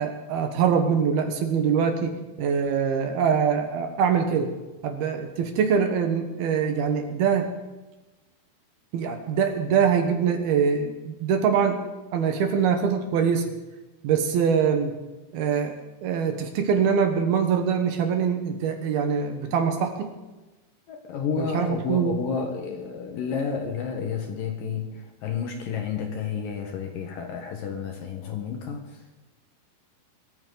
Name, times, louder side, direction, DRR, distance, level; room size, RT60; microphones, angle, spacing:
voice 1, 0.0-4.5 4.8-7.5 8.9-11.8 12.1-13.5 14.0-15.0 15.3-15.8 16.0-20.1 21.4-22.2, right 6 dB, 70° right, 5 dB, 2.9 m, -23 dB
voice 2, 20.9-29.2, left 6 dB, 65° left, 4 dB, 2.6 m, -31 dB
24.0 x 14.0 x 4.0 m, 1.1 s
omnidirectional pair, 5.1 m